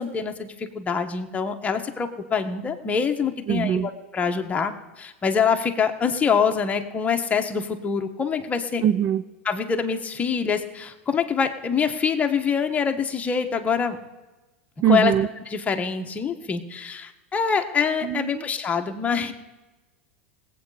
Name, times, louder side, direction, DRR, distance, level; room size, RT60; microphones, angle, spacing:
voice 1, 0.0-8.8 9.4-14.0 14.8-15.1 15.5-19.3, left 6 dB, 20° left, 5 dB, 1.3 m, -25 dB
voice 2, 3.5-3.9 8.8-9.2 14.8-15.3 18.0-18.4, right 10 dB, 45° right, 14 dB, 0.5 m, -21 dB
19.0 x 8.5 x 5.0 m, 1.1 s
hypercardioid pair, 115°, 7 cm